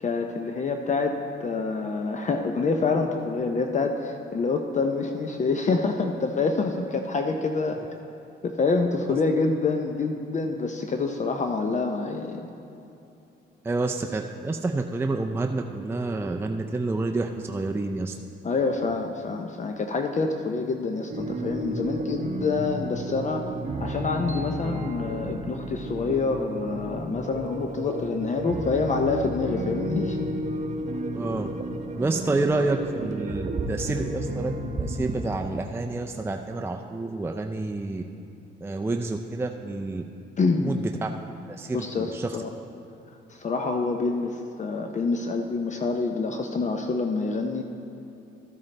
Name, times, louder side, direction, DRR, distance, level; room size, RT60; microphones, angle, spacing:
voice 1, 0.0-7.8 8.4-12.5 18.4-23.5 23.8-30.3 40.4-40.7 41.7-42.5 43.3-47.6, left 4 dB, 35° left, 4 dB, 0.6 m, -27 dB
voice 2, 13.6-18.1 31.1-31.5 31.9-34.5 34.8-38.0 38.6-40.0 40.6-41.1 41.5-42.4, right 2 dB, 10° right, 3 dB, 0.4 m, -29 dB
sound 1, 21.1-35.3, right 1 dB, 35° right, 0.8 m, -32 dB
13.0 x 8.8 x 3.3 m, 2.8 s
cardioid pair, 90°, 20 cm